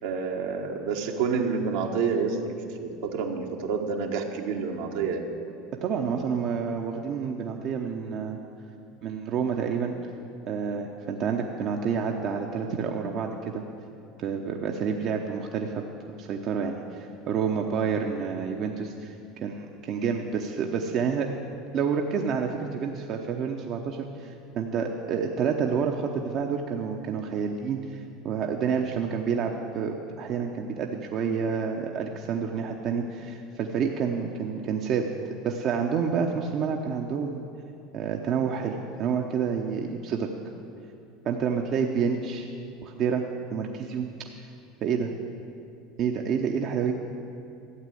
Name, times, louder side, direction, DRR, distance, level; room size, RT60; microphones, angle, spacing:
voice 1, 0.0-2.6 2.8-5.2, right 5 dB, 70° right, 2 dB, 1.4 m, -28 dB
voice 2, 5.8-8.4 9.0-9.9 10.5-13.6 14.2-15.8 16.2-21.3 21.7-35.1 35.4-37.4 37.9-40.3 41.2-42.5 42.8-43.2 43.5-44.5 44.8-45.1 46.0-46.9, right 6 dB, 50° right, 2 dB, 0.9 m, -29 dB
13.0 x 8.2 x 7.9 m, 2.6 s
hypercardioid pair, 80°, 0 cm